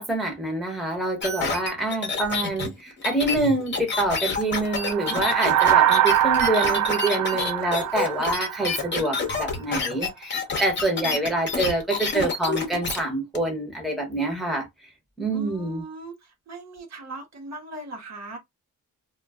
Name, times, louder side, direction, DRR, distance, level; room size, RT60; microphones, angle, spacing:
voice 1, 0.0-14.7 15.2-15.8, right 2 dB, ahead, 1.0 m, -26 dB
sound 1, 1.2-13.0 13.3-13.4, left 4 dB, 35° left, 0.8 m, -28 dB
sound 2, 4.7-9.2, right 12 dB, 75° right, 0.5 m, -23 dB
voice 2, 15.3-18.4, right 2 dB, 60° right, 0.9 m, -39 dB
2.3 x 2.1 x 3.4 m
wide cardioid pair, 120°, 31 cm